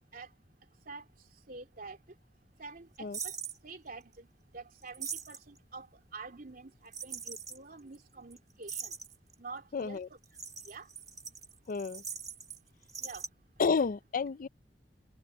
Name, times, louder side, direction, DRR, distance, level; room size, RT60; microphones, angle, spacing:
voice 1, 1.5-2.0 2.6-3.1 3.6-4.3 4.5-5.9 6.1-6.7 7.0-8.9 9.4-10.0 10.7-10.9 13.0-13.2, right 3 dB, 55° right, 2.6 m, -46 dB
sound 1, 3.1-3.6 4.8-5.6 6.9-7.6 7.9-8.0 8.3-8.4 8.6-9.3 10.2-12.6 12.8-13.3, right 6 dB, 20° right, 2.0 m, -41 dB
voice 2, 9.7-10.1 11.7-12.0 13.6-14.5, left 5 dB, 50° left, 0.4 m, -30 dB
head